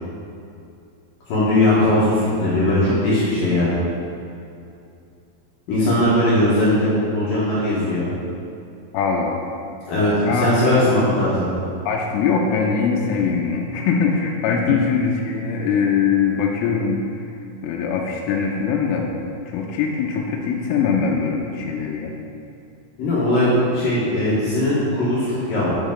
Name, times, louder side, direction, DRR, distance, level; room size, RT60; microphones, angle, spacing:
voice 1, 1.3-3.8 5.7-8.1 9.9-11.4 23.0-25.7, left 1 dB, 60° left, -9 dB, 2.5 m, -19 dB
voice 2, 8.9-9.5 10.2-10.9 11.9-17.0 17.6-19.1 19.5-22.1, left 6 dB, 85° left, 0 dB, 3.3 m, -22 dB
8.7 x 8.2 x 3.8 m, 2.6 s
omnidirectional pair, 5.8 m